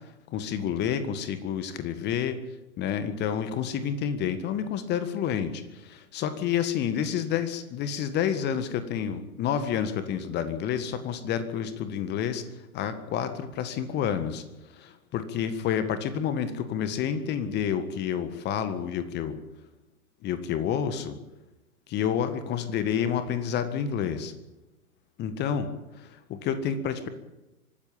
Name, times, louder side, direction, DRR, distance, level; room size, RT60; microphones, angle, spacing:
voice 1, 0.3-2.4 2.8-12.4 12.7-14.4 14.7-19.4 20.2-21.2 21.9-24.3 25.2-25.7 26.0-27.1, left 8 dB, 25° left, 11 dB, 1.7 m, -29 dB
24.5 x 13.5 x 8.7 m, 0.99 s
figure-of-eight pair, 110°, 44 cm